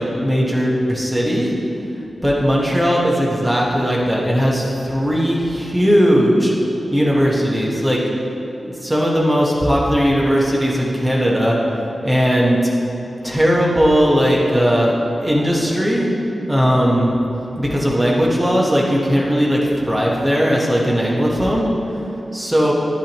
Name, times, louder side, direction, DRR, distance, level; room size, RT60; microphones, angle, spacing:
voice 1, 0.0-1.6 2.2-6.5 6.9-8.0 8.6-11.6 12.0-12.6 13.2-14.9 15.2-16.2 16.4-17.1 17.6-21.7 22.3-22.7, equal, 5° right, -4 dB, 1.4 m, -17 dB
12.0 x 9.8 x 3.1 m, 2.9 s
wide cardioid pair, 165°, 0 cm